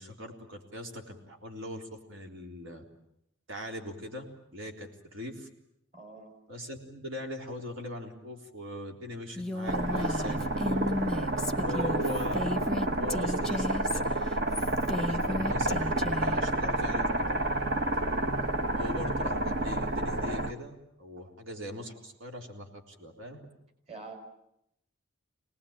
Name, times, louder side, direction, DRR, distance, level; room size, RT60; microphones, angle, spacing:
voice 1, 0.0-2.8 3.5-4.2 4.5-5.5 6.5-10.8 11.6-12.5 12.9-14.2 14.9-17.4 18.7-23.4, equal, 75° right, 2 dB, 3.9 m, -41 dB
voice 2, 5.9-6.4 23.9-24.2, right 3 dB, 30° right, 4 dB, 4.7 m, -46 dB
Female speech woman speaking, 9.4-16.4, left 2 dB, 5° left, 1.0 m, -34 dB
sound 1, 9.7-20.5, right 1 dB, 50° right, 1.3 m, -29 dB
26.5 x 19.5 x 8.9 m, 0.79 s
head